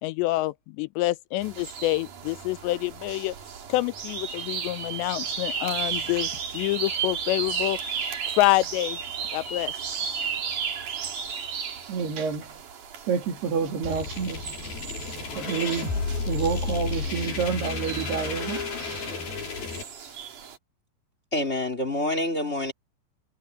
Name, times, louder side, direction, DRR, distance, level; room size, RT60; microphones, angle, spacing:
voice 1, 0.0-3.4 3.7-7.8 8.3-9.0 9.3-9.7, left 18 dB, 85° left, 2.9 m, -27 dB
sound 1, 1.4-20.6, right 7 dB, 50° right, 3.7 m, -35 dB
voice 2, 11.9-12.6 13.1-14.8 15.4-15.9 16.3-18.7, right 6 dB, 65° right, 4.9 m, -28 dB
sound 2, 13.8-19.8, left 4 dB, 55° left, 7.4 m, -32 dB
voice 3, 21.3-22.7, left 1 dB, 15° left, 4.0 m, -27 dB
omnidirectional pair, 5.0 m